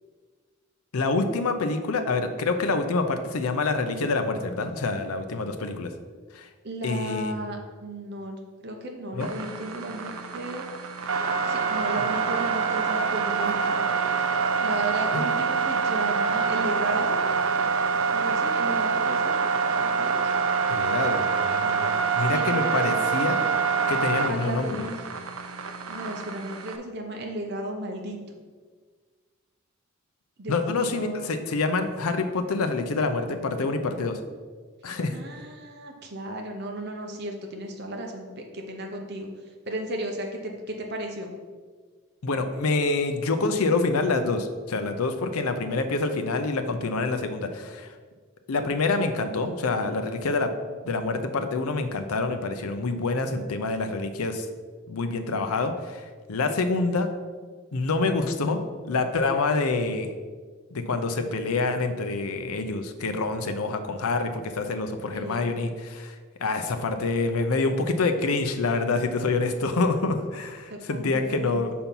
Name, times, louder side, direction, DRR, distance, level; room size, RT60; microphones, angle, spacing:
voice 1, 0.9-5.9 6.3-6.5 6.8-7.5 9.1-9.3 20.7-23.4 23.9-24.8 30.5-34.2 34.8-35.2 42.2-47.9 48.5-50.5 50.8-54.5 54.9-57.1 57.7-58.6 58.8-60.1 60.7-66.1 66.4-71.7, left 3 dB, 80° left, 7 dB, 0.6 m, -26 dB
voice 2, 6.6-10.7 11.4-13.9 14.6-17.2 18.1-19.4 20.0-20.3 22.3-22.8 24.2-25.0 25.9-28.4 30.4-31.3 35.1-39.3 39.7-41.3 65.1-65.5 70.7-71.6, right 1 dB, 50° right, 2 dB, 0.9 m, -34 dB
sound 1, 9.2-26.8, right 5 dB, 75° right, 0.6 m, -26 dB
5.6 x 4.3 x 5.4 m, 1.5 s
head